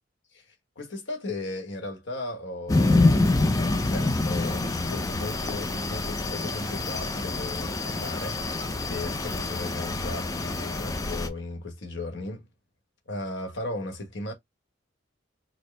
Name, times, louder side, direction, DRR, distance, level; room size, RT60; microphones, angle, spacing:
voice 1, 0.3-12.5 13.1-14.3, left 2 dB, 65° left, 1.1 m, -36 dB
sound 1, 2.7-11.3, left 2 dB, 20° left, 0.4 m, -26 dB
4.3 x 2.0 x 3.1 m
head